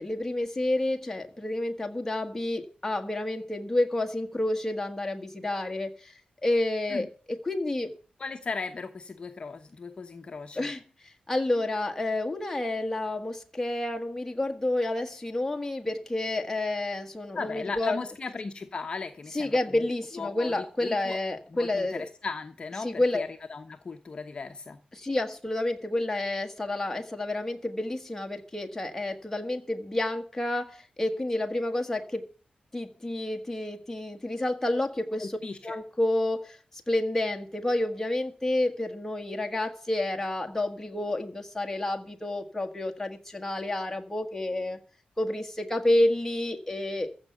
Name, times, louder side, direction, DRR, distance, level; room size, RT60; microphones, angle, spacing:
voice 1, 0.0-6.1 6.4-7.9 10.5-18.0 19.3-22.1 22.8-23.2 24.9-32.2 32.7-35.4 35.6-44.8 45.2-47.1, left 1 dB, 10° left, 1.6 m, -29 dB
voice 2, 8.2-10.7 17.3-19.8 20.1-20.5 20.8-21.2 21.5-24.8 35.2-35.8, left 4 dB, 35° left, 1.0 m, -37 dB
15.0 x 5.9 x 7.9 m
wide cardioid pair, 170°, 3 cm